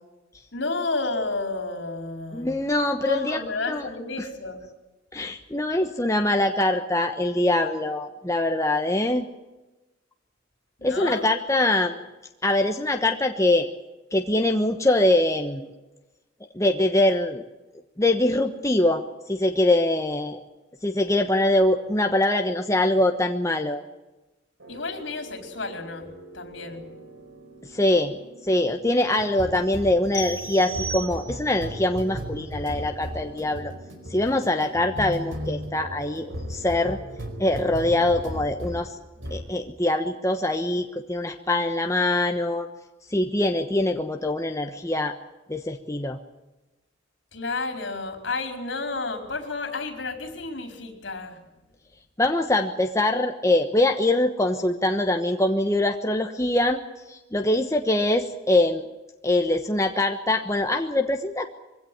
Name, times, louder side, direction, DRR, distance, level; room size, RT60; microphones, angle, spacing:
voice 1, 0.5-2.6 3.0-4.6 10.8-11.3 24.7-26.9 47.3-51.4, left 3 dB, 65° left, 5 dB, 4.5 m, -31 dB
voice 2, 2.3-3.4 3.7-3.9 4.2-4.3 5.1-9.2 10.8-12.0 12.4-13.7 14.1-15.7 16.5-17.4 18.0-20.4 20.8-23.8 27.7-28.2 28.4-33.7 34.1-37.0 37.4-38.9 39.3-42.7 43.1-45.1 45.5-46.2 52.2-56.8 57.1-58.8 59.2-61.5, left 1 dB, 15° left, 4 dB, 1.1 m, -23 dB
sound 1, 24.6-38.9 39.2-39.5, equal, 75° right, 4.9 m, -37 dB
sound 2, 30.1-31.7, right 1 dB, 35° left, 6.1 m, -35 dB
23.0 x 17.0 x 9.3 m, 1.1 s
head